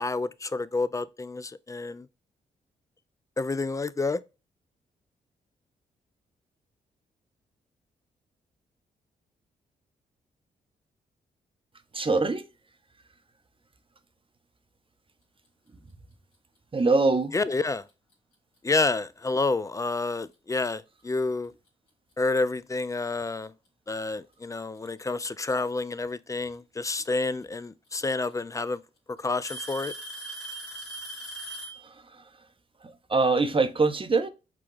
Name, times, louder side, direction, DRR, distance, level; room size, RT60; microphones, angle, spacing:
voice 1, 0.0-2.1 3.4-4.2 17.3-17.9 18.6-21.5 22.2-23.5 23.9-28.8 29.2-29.9, left 3 dB, 15° left, 0.4 m, -29 dB
voice 2, 11.9-12.5 16.7-17.4 31.8-32.3 32.8-34.3, right 3 dB, 30° right, 0.7 m, -24 dB
Alarm / Tick-tock, 17.9-18.1 19.0-19.1 19.9-20.0 21.7-21.8 23.0-23.1 24.3-24.8 26.5-26.6 27.9-28.0 28.3-28.8 29.4-31.9, right 2 dB, 85° left, 1.4 m, -39 dB
5.9 x 2.3 x 3.1 m
hypercardioid pair, 40°, 18 cm